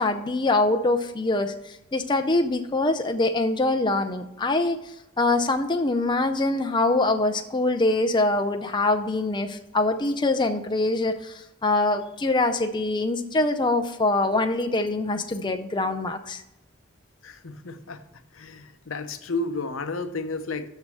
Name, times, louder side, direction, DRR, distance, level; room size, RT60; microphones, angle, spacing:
voice 1, 0.0-4.8 5.2-16.4, left 2 dB, 20° left, 6 dB, 0.5 m, -24 dB
voice 2, 17.2-18.0 18.3-20.7, left 3 dB, 75° left, 9 dB, 0.8 m, -32 dB
6.6 x 6.4 x 6.3 m, 0.89 s
head